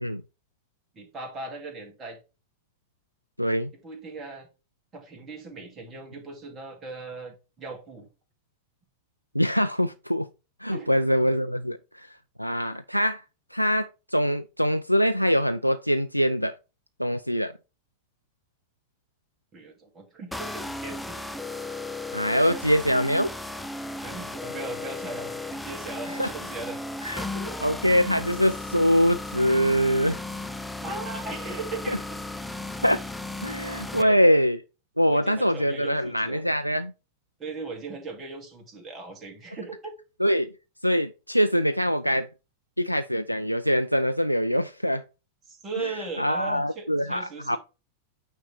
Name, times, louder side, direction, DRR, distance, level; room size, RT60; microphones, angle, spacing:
voice 1, 1.0-2.2 3.8-4.5 4.9-8.1 10.6-10.9 19.5-21.3 22.4-22.6 24.0-26.8 27.3-27.6 30.8-32.0 33.8-34.2 35.0-36.4 37.4-39.9 45.5-47.6, right 3 dB, 20° right, 2.2 m, -38 dB
voice 2, 3.4-3.7 9.3-10.3 10.6-13.2 13.5-16.6 17.0-17.5 22.1-23.3 26.2-26.3 27.0-27.3 27.6-30.2 31.9-32.0 32.8-33.0 33.4-34.6 35.0-36.9 40.2-40.5 40.8-42.3 42.8-45.0 45.8-47.6, equal, 90° right, 0.3 m, -24 dB
sound 1, 20.3-34.0, left 2 dB, 5° left, 0.5 m, -35 dB
8.9 x 3.3 x 4.3 m
figure-of-eight pair, 90°, 0 cm